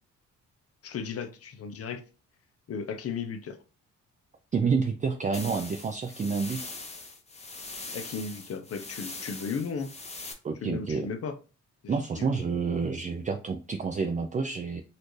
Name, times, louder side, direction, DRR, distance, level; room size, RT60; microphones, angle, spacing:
voice 1, 0.8-2.0 2.7-3.6 7.9-9.9 10.6-11.4 11.8-12.3, left 5 dB, 50° left, 0.8 m, -35 dB
voice 2, 4.5-6.6 10.4-11.1 11.9-14.8, right 5 dB, 25° right, 0.4 m, -29 dB
sound 1, 5.3-10.3, left 3 dB, 20° left, 0.9 m, -41 dB
4.2 x 2.6 x 3.1 m
cardioid pair, 90°, 30 cm